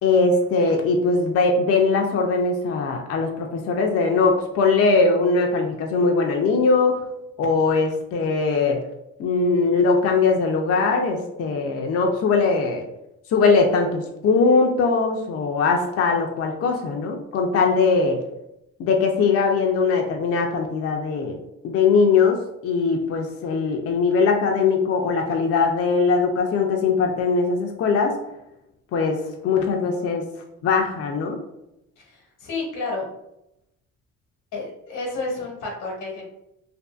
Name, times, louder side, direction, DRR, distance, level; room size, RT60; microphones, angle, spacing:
voice 1, 0.0-7.0 7.4-8.8 9.2-12.8 13.3-18.2 18.8-21.4 21.6-28.2 28.9-30.2 30.6-31.4, left 4 dB, 50° left, 2 dB, 0.4 m, -20 dB
voice 2, 32.0-33.1 34.5-36.3, left 3 dB, 90° left, -2 dB, 1.0 m, -31 dB
2.6 x 2.5 x 2.3 m, 0.85 s
cardioid pair, 90°, 30 cm